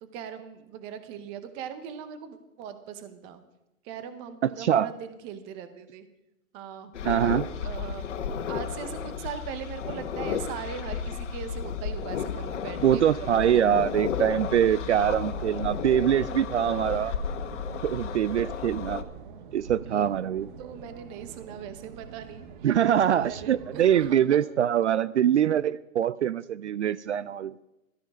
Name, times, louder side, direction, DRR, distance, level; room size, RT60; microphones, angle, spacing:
voice 1, 0.0-3.4 3.8-6.1 6.5-8.1 8.5-13.5 19.8-20.1 20.6-22.7 23.0-24.4, right 8 dB, 15° right, 10 dB, 0.7 m, -40 dB
voice 2, 4.4-4.9 7.0-7.4 12.8-17.1 17.8-19.0 19.5-20.5 22.6-27.5, right 10 dB, 55° right, 18 dB, 0.5 m, -24 dB
sound 1, 6.9-19.0, left 7 dB, 55° left, 1.6 m, -33 dB
sound 2, 14.8-24.1, right 6 dB, 35° right, 1.3 m, -45 dB
17.0 x 13.0 x 5.3 m, 0.93 s
hypercardioid pair, 155°, 42 cm